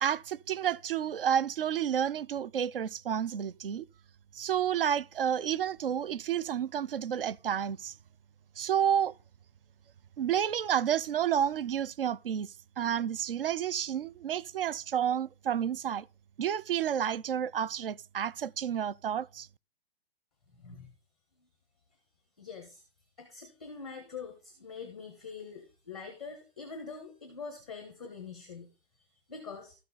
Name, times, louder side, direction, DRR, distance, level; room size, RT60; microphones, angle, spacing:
voice 1, 0.0-3.8 4.3-7.9 8.6-9.1 10.2-16.1 16.4-19.5, right 9 dB, 60° right, 0.5 m, -30 dB
voice 2, 20.5-20.9 22.4-22.8 23.2-28.7 28.9-29.7, left 5 dB, ahead, 0.6 m, -44 dB
13.0 x 6.9 x 3.9 m
hypercardioid pair, 180°, 31 cm